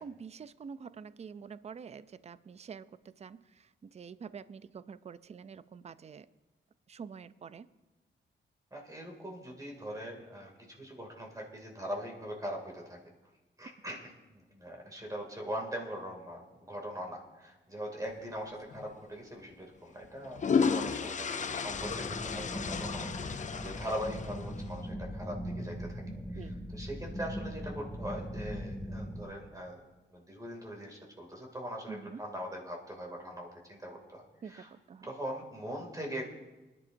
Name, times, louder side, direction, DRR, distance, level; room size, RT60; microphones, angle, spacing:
voice 1, 0.0-6.3 6.9-7.7 26.2-26.7 31.9-32.2 34.4-35.1, right 6 dB, 35° right, 15 dB, 0.4 m, -47 dB
voice 2, 8.7-13.0 13.6-26.0 26.3-34.7 35.0-36.2, equal, 15° right, 0 dB, 2.5 m, -41 dB
sound 1, 18.7-18.9 20.0-24.6, left 5 dB, 40° left, 0.5 m, -33 dB
sound 2, 21.7-29.2, equal, 10° left, 2.0 m, -40 dB
24.5 x 11.0 x 2.6 m, 1.1 s
cardioid pair, 100°, 20 cm